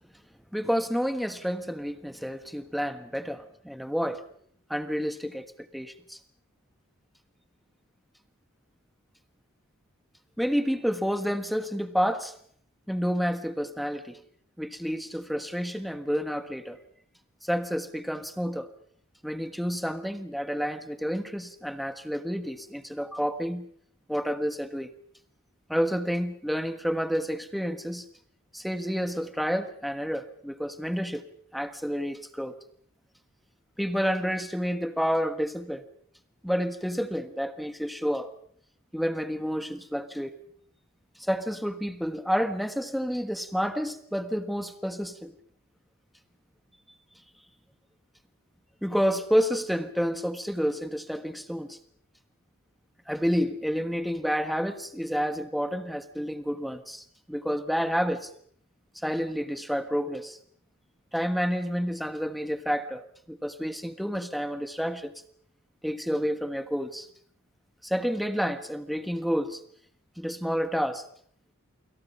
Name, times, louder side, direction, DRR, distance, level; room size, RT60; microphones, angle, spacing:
voice 1, 0.5-4.2 4.7-5.5 5.7-6.2 10.4-12.3 12.9-14.2 14.6-16.8 17.4-18.7 19.2-23.6 24.1-24.9 25.7-28.0 28.5-31.2 31.5-32.5 33.8-35.8 36.4-38.3 38.9-40.4 41.2-45.3 48.8-51.8 53.1-58.3 59.0-60.4 61.1-65.1 65.8-67.1 67.8-69.6 70.2-71.0, equal, ahead, 1.3 m, -29 dB
28.5 x 25.5 x 5.5 m
head